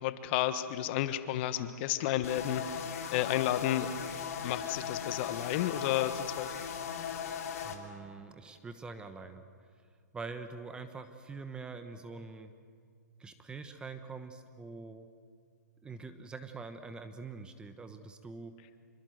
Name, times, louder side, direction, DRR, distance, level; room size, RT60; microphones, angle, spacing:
voice 1, 0.0-2.9 3.1-3.9 4.4-6.5, left 12 dB, 35° left, 11 dB, 1.3 m, -32 dB
sound 1, 2.2-7.8, left 8 dB, 55° left, 2.9 m, -38 dB
voice 2, 7.6-9.4 10.1-12.5 13.2-15.1 15.8-18.5, right 4 dB, 10° right, 8 dB, 1.1 m, -44 dB
26.0 x 24.0 x 7.9 m, 2.1 s
hypercardioid pair, 140°, 10 cm